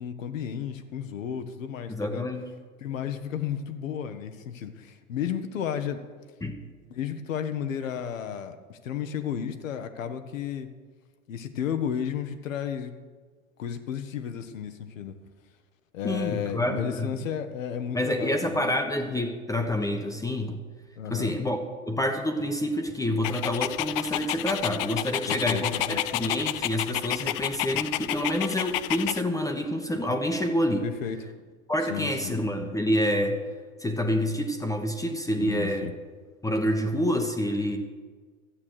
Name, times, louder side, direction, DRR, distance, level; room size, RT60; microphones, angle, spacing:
voice 1, 0.0-2.3 2.8-6.0 6.9-10.7 11.3-12.9 13.6-15.2 15.9-18.7 21.0-21.3 25.3-25.6 25.9-26.0 30.8-31.3 31.9-32.4 35.4-35.9, left 8 dB, 65° left, 9 dB, 1.2 m, -33 dB
voice 2, 1.9-2.5 6.4-6.6 16.0-17.2 17.9-20.6 21.1-21.6 21.9-30.9 31.7-33.4 33.8-35.9 36.4-37.8, left 1 dB, 10° left, 4 dB, 1.0 m, -27 dB
Dog, 23.2-29.2, left 16 dB, 45° left, 0.4 m, -30 dB
13.0 x 8.5 x 6.4 m, 1.5 s
figure-of-eight pair, 90°, 41 cm